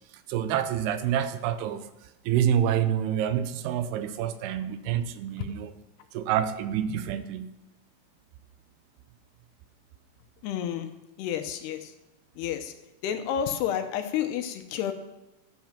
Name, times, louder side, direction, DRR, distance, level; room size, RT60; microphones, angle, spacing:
voice 1, 0.3-1.9 2.3-5.7 6.1-7.6, right 9 dB, 80° right, 11 dB, 2.6 m, -27 dB
voice 2, 10.4-10.9 11.2-11.9 12.4-12.7 13.0-14.9, left 9 dB, 75° left, 7 dB, 2.8 m, -30 dB
13.0 x 7.7 x 5.9 m, 0.97 s
omnidirectional pair, 4.9 m